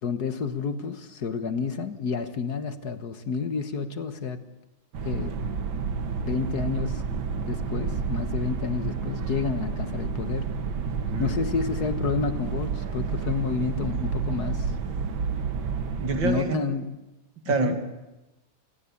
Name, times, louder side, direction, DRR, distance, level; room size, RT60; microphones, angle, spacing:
voice 1, 0.0-4.4 5.0-5.4 6.2-7.0 7.4-10.5 11.2-14.8 16.2-17.0 17.5-17.7, left 5 dB, 55° left, 10 dB, 1.8 m, -30 dB
sound 1, 4.9-16.4, right 5 dB, 90° right, 2.2 m, -30 dB
voice 2, 10.9-11.3 16.0-16.6 17.5-17.8, right 4 dB, 75° right, 6 dB, 3.0 m, -27 dB
29.0 x 18.5 x 8.5 m, 1.0 s
omnidirectional pair, 2.1 m